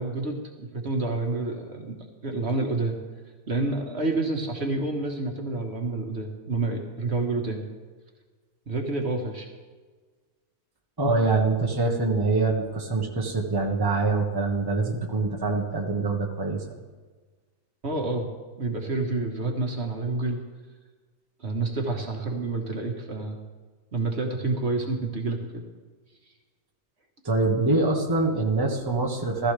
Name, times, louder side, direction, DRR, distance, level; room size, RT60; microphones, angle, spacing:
voice 1, 0.0-2.0 2.2-3.0 3.5-7.6 8.7-9.5 17.8-18.3 18.6-20.4 21.4-23.4 23.9-25.6, right 3 dB, 50° right, 2 dB, 1.6 m, -28 dB
voice 2, 11.0-16.6 27.2-29.5, right 3 dB, 20° right, 0 dB, 1.3 m, -24 dB
15.0 x 14.5 x 3.4 m, 1.4 s
omnidirectional pair, 1.4 m